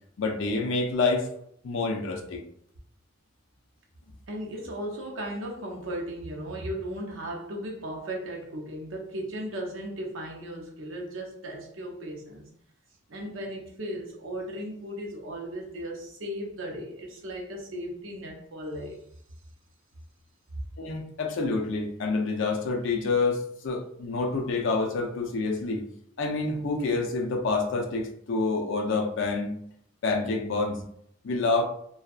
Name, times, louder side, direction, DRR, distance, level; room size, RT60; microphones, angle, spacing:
voice 1, 0.2-1.3 1.6-2.4 20.8-25.8 26.2-29.5 30.0-30.8 31.2-31.6, left 3 dB, 65° left, 0.5 m, -27 dB
voice 2, 4.3-12.5 13.1-19.0, right 1 dB, 70° right, 0.7 m, -36 dB
2.6 x 2.3 x 2.3 m
head